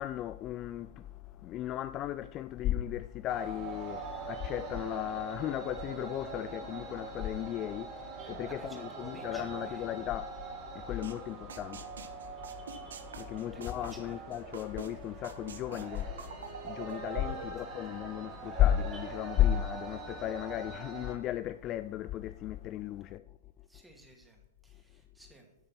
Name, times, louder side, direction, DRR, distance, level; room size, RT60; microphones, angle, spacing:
voice 1, 0.0-12.1 12.5-12.9 13.2-16.2 16.6-23.2, left 12 dB, 30° left, 0.3 m, -34 dB
sound 1, 3.3-21.2, right 4 dB, 25° right, 3.5 m, -43 dB
voice 2, 8.5-9.9 13.4-14.2 17.5-17.6 23.7-25.5, right 2 dB, 5° right, 2.4 m, -55 dB
sound 2, 11.0-11.1 11.5-14.9 15.2-17.5, right 6 dB, 75° right, 1.4 m, -44 dB
12.0 x 6.5 x 5.9 m
hypercardioid pair, 130°, 0 cm